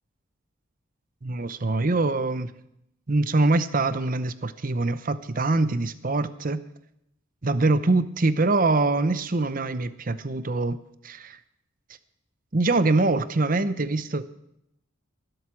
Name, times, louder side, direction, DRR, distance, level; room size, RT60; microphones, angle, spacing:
voice 1, 1.2-2.5 3.1-6.6 7.4-10.8 11.0-11.4 12.5-14.2, right 2 dB, 40° right, 13 dB, 0.7 m, -24 dB
20.5 x 8.0 x 6.1 m, 0.79 s
head